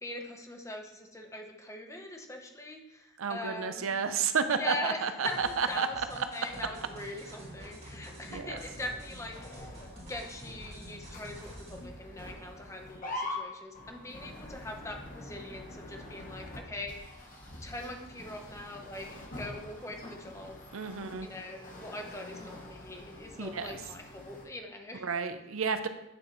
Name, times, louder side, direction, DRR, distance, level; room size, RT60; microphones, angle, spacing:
voice 1, 0.0-3.9 4.5-9.7 10.1-17.2 17.6-19.1 19.4-20.6 21.2-25.1, left 1 dB, 15° left, 3 dB, 0.9 m, -42 dB
voice 2, 3.2-5.9 8.3-8.6 20.7-21.3 23.4-23.7 25.0-25.9, right 6 dB, 75° right, 10 dB, 0.6 m, -31 dB
sound 1, 5.2-12.0, right 1 dB, 30° right, 2.6 m, -49 dB
sound 2, 6.5-24.5, left 1 dB, 40° left, 1.3 m, -45 dB
9.0 x 7.2 x 3.1 m, 0.91 s
head